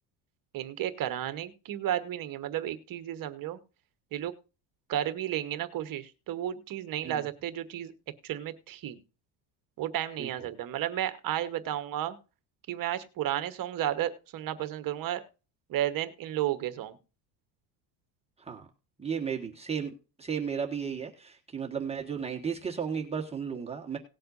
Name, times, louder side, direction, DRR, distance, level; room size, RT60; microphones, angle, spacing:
voice 1, 0.5-3.6 4.1-4.3 4.9-7.9 8.2-9.0 9.8-12.2 12.7-15.2 15.7-17.0, right 12 dB, 40° right, 11 dB, 1.2 m, -33 dB
voice 2, 19.0-19.9 20.2-24.0, right 6 dB, 10° right, -1 dB, 1.4 m, -34 dB
18.5 x 7.7 x 2.6 m, 0.33 s
cardioid pair, 160°, 50 cm